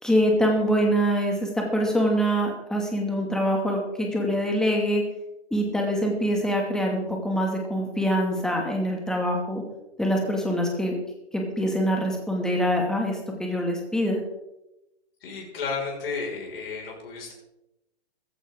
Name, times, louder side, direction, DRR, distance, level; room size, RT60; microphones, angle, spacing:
voice 1, 0.0-5.0 5.5-9.6 10.0-10.9 11.3-14.2, equal, ahead, 0 dB, 2.4 m, -24 dB
voice 2, 15.2-17.3, left 4 dB, 60° left, 0 dB, 6.0 m, -32 dB
15.0 x 15.0 x 3.9 m, 0.91 s
hypercardioid pair, 135°, 34 cm